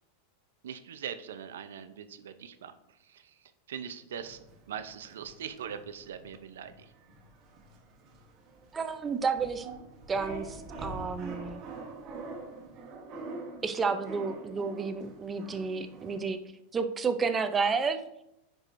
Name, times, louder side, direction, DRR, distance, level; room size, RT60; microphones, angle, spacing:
voice 1, 0.6-2.7 3.1-3.2 3.7-4.4 4.7-6.7, right 8 dB, 90° right, 10 dB, 0.6 m, -41 dB
sound 1, 4.1-16.4, right 2 dB, 35° right, 1.2 m, -45 dB
voice 2, 8.7-9.7 10.1-11.6 13.6-16.4 16.7-18.0, right 5 dB, 15° right, 9 dB, 0.5 m, -31 dB
9.8 x 4.7 x 2.6 m, 0.83 s
supercardioid pair, 140°, 0 cm